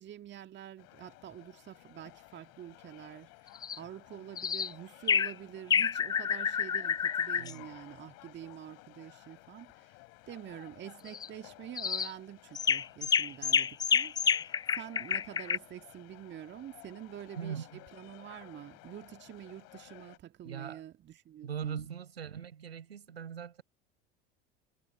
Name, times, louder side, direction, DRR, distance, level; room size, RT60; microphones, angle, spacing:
voice 1, 0.0-10.0 10.3-17.7 17.9-21.9, right 11 dB, 35° right, 1.8 m, -47 dB
sound 1, 0.8-20.2, left 31 dB, 55° left, 4.2 m, -55 dB
sound 2, 3.6-3.8 4.4-4.7 5.1-5.3 5.7-7.5 11.1-11.3 11.8-12.1 12.5-15.6, left 7 dB, 15° left, 0.3 m, -29 dB
voice 2, 7.4-7.7 17.4-17.8 20.4-20.8 21.4-23.6, right 8 dB, 75° right, 6.8 m, -40 dB
figure-of-eight pair, 70°, 31 cm